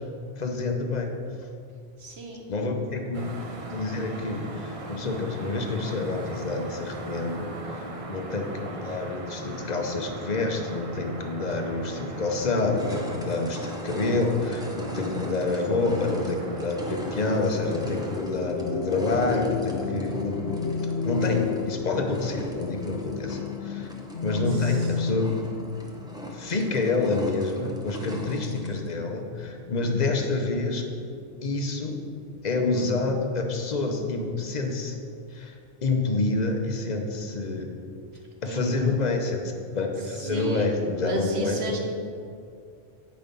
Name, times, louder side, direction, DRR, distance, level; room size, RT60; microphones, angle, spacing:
voice 1, 0.4-1.2 2.5-3.3 3.7-20.4 20.8-23.9 24.2-25.4 26.3-30.8 31.4-32.0 32.4-35.0 35.3-35.5 35.8-37.7 38.4-41.8, left 3 dB, 45° left, 3 dB, 0.9 m, -28 dB
voice 2, 2.0-2.7 24.5-25.0 38.5-39.0 40.0-40.6 40.9-41.8, right 2 dB, 75° right, 1 dB, 1.4 m, -35 dB
sound 1, 3.1-18.2, right 2 dB, 40° right, 0.6 m, -39 dB
sound 2, 11.5-11.6 12.1-28.9, equal, 5° right, 0.7 m, -41 dB
sound 3, 17.8-30.2 30.5-33.5, left 5 dB, 80° left, 0.9 m, -33 dB
8.9 x 5.2 x 5.3 m, 2.4 s
omnidirectional pair, 1.1 m